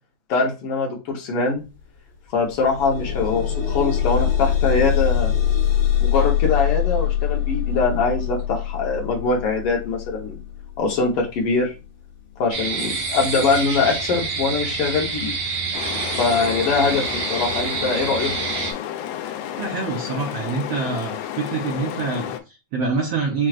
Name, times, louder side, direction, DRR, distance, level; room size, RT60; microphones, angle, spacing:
voice 1, 0.3-1.6 2.3-5.3 6.0-10.4 10.8-11.7 12.4-15.3 16.2-18.3, left 4 dB, 65° left, -1 dB, 1.4 m, -22 dB
sound 1, 1.6-1.8 2.1-13.1 13.9-14.0 14.5-14.6, left 10 dB, 50° left, 2.1 m, -24 dB
sound 2, 12.5-18.7, right 4 dB, 60° right, 1.6 m, -27 dB
sound 3, 15.7-22.4, left 11 dB, 90° left, 2.4 m, -31 dB
voice 2, 19.6-23.5, right 4 dB, 80° right, -1 dB, 1.4 m, -26 dB
6.6 x 3.0 x 2.4 m, 0.29 s
omnidirectional pair, 4.1 m